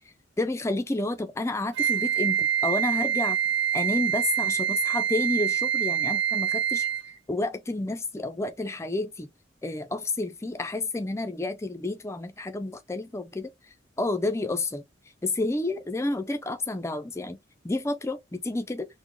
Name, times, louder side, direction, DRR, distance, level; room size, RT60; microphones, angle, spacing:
voice 1, 0.4-3.4 3.7-6.9 7.3-9.3 9.6-13.5 14.0-14.8 15.2-17.4 17.6-18.9, left 2 dB, 15° left, 0.4 m, -30 dB
Wind instrument woodwind instrument, 1.8-7.1, right 9 dB, 60° right, 0.4 m, -26 dB
3.6 x 2.1 x 3.0 m
head